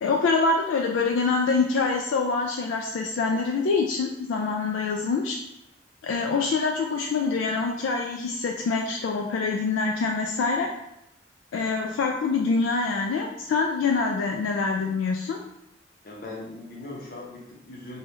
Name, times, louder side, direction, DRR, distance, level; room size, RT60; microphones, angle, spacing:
voice 1, 0.0-5.4 6.0-10.7 11.5-15.4, left 4 dB, 80° left, 1 dB, 0.3 m, -25 dB
voice 2, 16.0-18.0, left 2 dB, 50° left, -2 dB, 0.7 m, -39 dB
2.7 x 2.2 x 3.4 m, 0.82 s
head